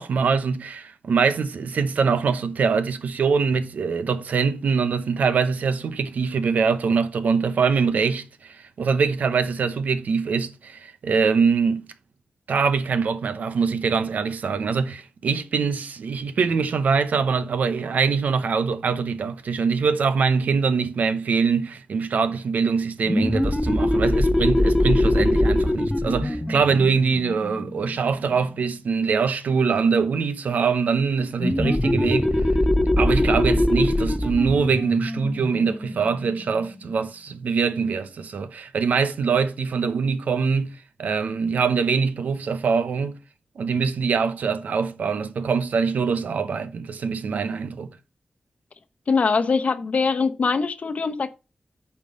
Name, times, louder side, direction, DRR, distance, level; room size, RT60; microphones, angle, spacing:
voice 1, 0.0-11.9 12.5-32.5 33.0-43.2 43.6-47.9, right 5 dB, 85° right, 0.8 m, -23 dB
sound 1, 23.0-28.4 31.4-36.7, left 1 dB, 10° left, 0.8 m, -22 dB
voice 2, 49.1-51.3, left 4 dB, 60° left, 0.8 m, -22 dB
8.5 x 4.6 x 5.2 m
wide cardioid pair, 90°, 3 cm